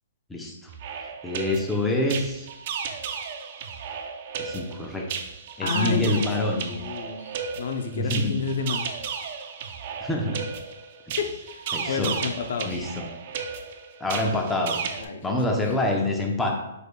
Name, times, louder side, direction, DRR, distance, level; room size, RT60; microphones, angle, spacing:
sound 1, 0.7-15.1, right 6 dB, 45° right, 0.5 m, -34 dB
voice 1, 1.2-2.5 4.4-5.0 5.6-6.7 7.9-8.3 10.0-10.5 11.1-11.2 11.7-12.2 12.6-13.1 14.0-14.8 15.2-16.5, left 1 dB, 5° left, 0 dB, 0.7 m, -26 dB
voice 2, 5.6-8.9 11.2-12.8 15.0-15.6, left 5 dB, 65° left, 6 dB, 0.5 m, -30 dB
4.9 x 4.7 x 2.2 m, 0.87 s
hypercardioid pair, 150°, 0 cm